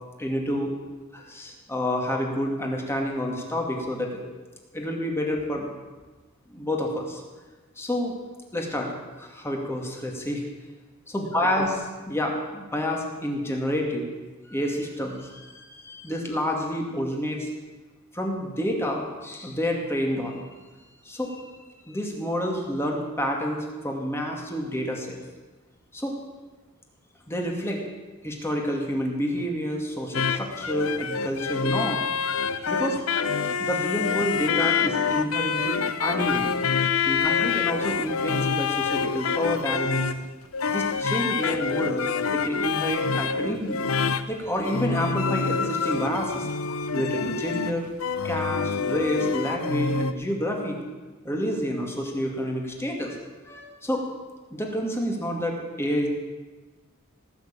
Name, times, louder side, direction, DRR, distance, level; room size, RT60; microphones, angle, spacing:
voice 1, 0.2-0.7 1.1-4.2 4.7-5.7 6.5-7.2 7.8-8.1 8.5-8.9 9.2-10.4 11.1-11.7 12.1-14.1 14.5-17.5 18.1-20.4 21.1-21.5 21.9-25.2 25.9-26.1 27.3-27.8 28.2-32.0 32.7-33.1 33.6-36.5 37.0-40.0 40.7-43.8 44.3-46.5 46.9-47.9 48.2-50.8 51.2-53.2 53.4-54.0 54.5-56.1, equal, 10° left, 0 dB, 2.3 m, -29 dB
sound 1, 30.1-50.1, left 5 dB, 70° left, 0.7 m, -26 dB
18.5 x 6.8 x 8.5 m, 1.3 s
head